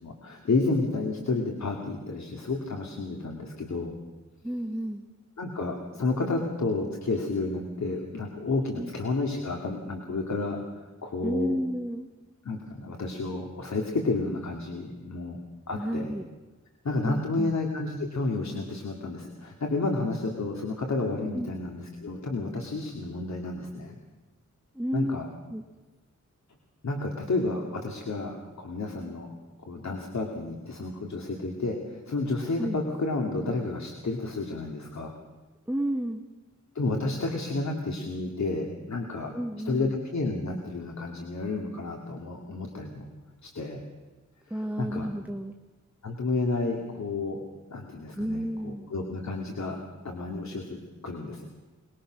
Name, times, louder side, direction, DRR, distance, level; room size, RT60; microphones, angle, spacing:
voice 1, 0.0-3.9 5.4-11.6 12.4-15.4 15.7-16.1 16.8-24.0 24.9-25.3 26.8-29.3 29.6-35.1 36.7-39.3 39.6-43.1 43.4-43.8 44.5-45.1 46.0-47.4 47.7-49.8 50.0-51.5, left 3 dB, 65° left, 2 dB, 2.7 m, -31 dB
voice 2, 4.4-5.1 8.8-8.9 11.2-12.1 15.8-16.3 17.0-17.6 21.3-21.5 24.7-25.2 25.5-25.6 32.6-32.8 35.7-36.2 39.3-39.9 44.5-45.5 48.2-48.9, equal, 5° right, 4 dB, 1.3 m, -31 dB
23.5 x 21.0 x 6.4 m, 1.3 s
wide cardioid pair, 110°, 30 cm